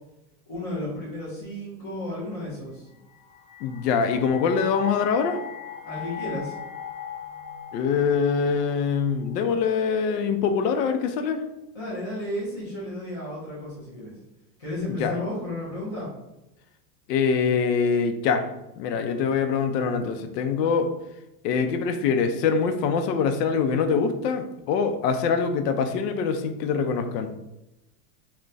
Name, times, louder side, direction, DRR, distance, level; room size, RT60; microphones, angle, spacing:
voice 1, 0.5-2.9 5.8-6.6 11.7-14.2 14.6-16.1, left 1 dB, 20° left, -8 dB, 0.3 m, -33 dB
sound 1, 2.9-10.0, left 9 dB, 70° left, 1.1 m, -40 dB
voice 2, 3.6-5.4 7.7-11.4 15.0-15.1 17.1-18.4 18.8-20.9 21.4-27.3, left 5 dB, 90° left, 7 dB, 0.6 m, -24 dB
2.3 x 2.2 x 3.8 m, 0.94 s
supercardioid pair, 175°, 47 cm